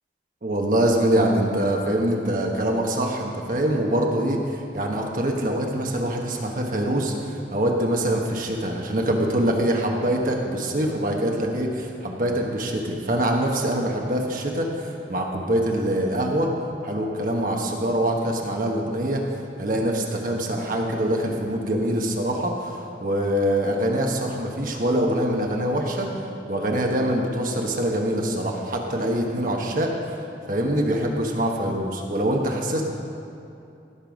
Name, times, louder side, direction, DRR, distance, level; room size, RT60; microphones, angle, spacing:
voice 1, 0.4-16.5 16.8-19.2 19.6-26.1 26.5-30.2 30.5-32.8, right 1 dB, 50° right, 0 dB, 1.2 m, -24 dB
17.0 x 6.8 x 5.2 m, 2.7 s
head